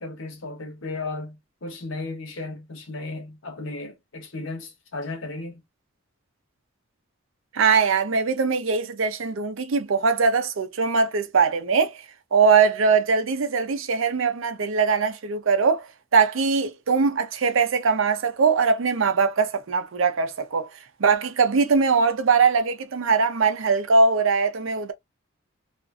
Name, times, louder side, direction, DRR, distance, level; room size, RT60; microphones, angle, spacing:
voice 1, 0.0-5.6, left 2 dB, 70° left, 0.9 m, -35 dB
voice 2, 7.5-11.9 12.3-15.9 16.1-20.7 21.0-24.9, right 5 dB, 75° right, 0.5 m, -21 dB
2.5 x 2.5 x 2.3 m
head